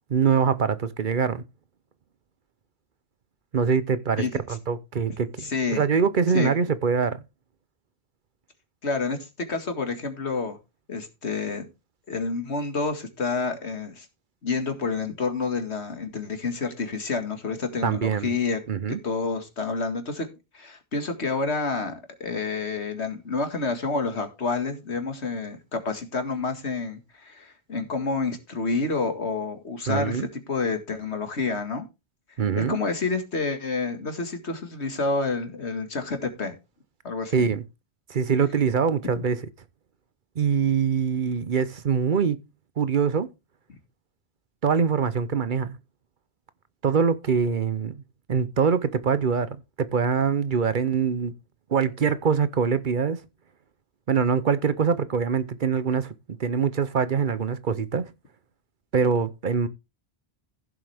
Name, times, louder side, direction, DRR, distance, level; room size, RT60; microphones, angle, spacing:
voice 1, 0.1-1.4 3.5-4.2 4.5-7.2 17.8-18.3 18.7-19.0 29.9-30.3 32.4-32.8 37.3-37.6 38.1-39.4 40.4-42.4 42.8-43.3 44.6-45.8 46.8-48.0 48.3-51.3 51.7-53.2 54.1-56.1 56.4-58.1 58.9-59.7, right 6 dB, 50° right, 0.8 m, -24 dB
voice 2, 5.4-5.8 6.3-6.5 8.8-10.6 10.9-11.7 12.1-14.1 14.4-18.6 18.9-20.3 20.5-31.9 32.5-36.5 37.0-37.5 43.7-43.8, left 4 dB, 90° left, 2.2 m, -29 dB
15.0 x 7.5 x 3.5 m
omnidirectional pair, 1.1 m